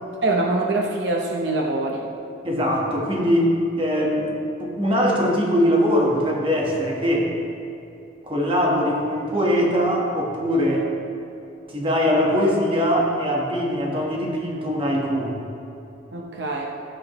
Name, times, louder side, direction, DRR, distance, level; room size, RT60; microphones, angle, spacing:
voice 1, 0.2-2.1 16.1-16.7, right 2 dB, 65° right, 0 dB, 0.8 m, -24 dB
voice 2, 2.4-4.3 4.6-7.3 8.3-10.9 11.7-15.4, equal, 30° right, -2 dB, 1.3 m, -21 dB
14.0 x 7.9 x 3.1 m, 2.7 s
head